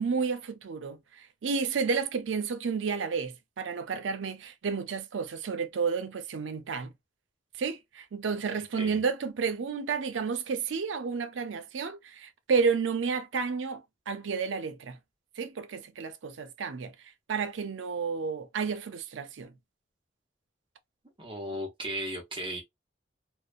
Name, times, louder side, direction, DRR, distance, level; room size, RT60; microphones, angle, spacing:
voice 1, 0.0-6.9 7.6-15.0 15.4-16.9 17.3-19.5, right 5 dB, 85° right, 0.5 m, -31 dB
voice 2, 21.2-22.6, right 1 dB, 30° right, 0.6 m, -36 dB
2.6 x 2.1 x 2.3 m
head